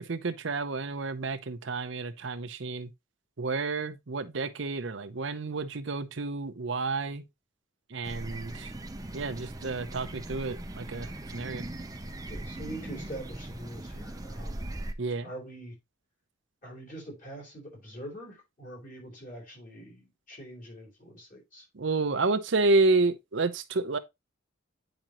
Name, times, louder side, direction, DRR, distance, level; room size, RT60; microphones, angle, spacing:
voice 1, 0.0-2.9 3.4-7.2 7.9-8.7 9.1-11.6 15.0-15.3 21.7-24.0, right 3 dB, 65° right, 0.7 m, -30 dB
sound 1, 8.0-14.9, right 1 dB, 20° right, 0.7 m, -40 dB
voice 2, 12.3-14.7 15.2-15.8 16.6-21.7, right 1 dB, 40° left, 4.0 m, -44 dB
9.0 x 5.2 x 2.9 m
head